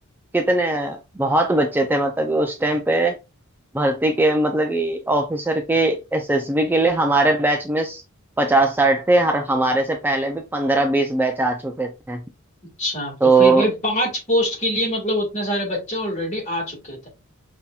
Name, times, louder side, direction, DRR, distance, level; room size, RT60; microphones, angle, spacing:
voice 1, 0.3-3.2 3.7-8.0 8.4-12.2 13.2-13.7, right 2 dB, 10° right, 0.3 m, -20 dB
voice 2, 12.8-17.1, equal, 35° left, 2.0 m, -24 dB
5.5 x 2.7 x 2.3 m
head